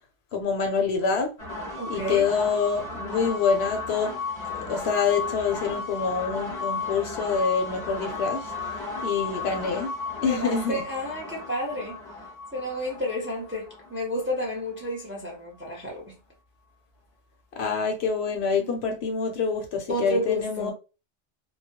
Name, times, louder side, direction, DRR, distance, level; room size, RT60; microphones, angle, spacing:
voice 1, 0.3-1.3 1.9-4.1 4.5-9.9 10.2-10.8 17.5-20.7, left 5 dB, 65° left, 0.8 m, -26 dB
sound 1, 1.4-15.0, left 3 dB, 35° left, 0.7 m, -34 dB
voice 2, 1.8-2.3 10.2-12.0 12.5-16.1 18.6-18.7 19.9-20.7, equal, 15° right, 0.5 m, -31 dB
2.2 x 2.0 x 2.8 m
omnidirectional pair, 1.2 m